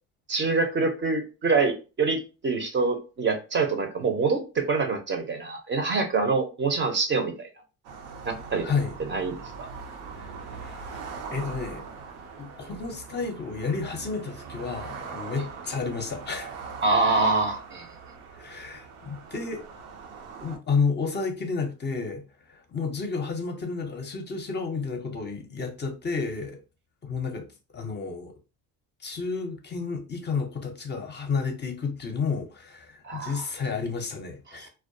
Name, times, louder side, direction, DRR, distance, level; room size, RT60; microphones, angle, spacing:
voice 1, 0.3-7.5 8.2-8.7 9.1-9.7 16.8-17.9 33.0-33.4 34.5-34.7, right 4 dB, 30° right, 0.5 m, -25 dB
sound 1, 7.8-20.6, right 5 dB, 85° right, 0.6 m, -41 dB
voice 2, 8.6-9.0 10.1-10.8 11.3-11.8 12.4-16.5 18.3-19.6 20.4-26.6 27.0-27.5 27.7-28.3 29.0-34.7, left 4 dB, 30° left, 0.5 m, -31 dB
2.2 x 2.2 x 2.6 m
supercardioid pair, 90°, 36 cm